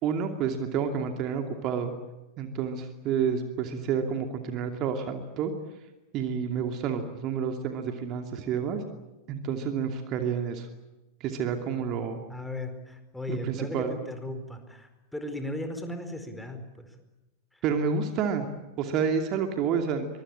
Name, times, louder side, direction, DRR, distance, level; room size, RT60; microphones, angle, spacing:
voice 1, 0.0-1.9 2.4-5.5 6.1-8.8 9.3-10.7 11.2-12.2 13.3-14.0 17.6-18.5 18.8-20.1, right 7 dB, 35° right, 6 dB, 2.6 m, -29 dB
voice 2, 12.3-17.0 17.5-17.6, left 1 dB, 5° left, 7 dB, 4.5 m, -37 dB
24.0 x 23.5 x 8.8 m, 1.1 s
figure-of-eight pair, 90°, 0 cm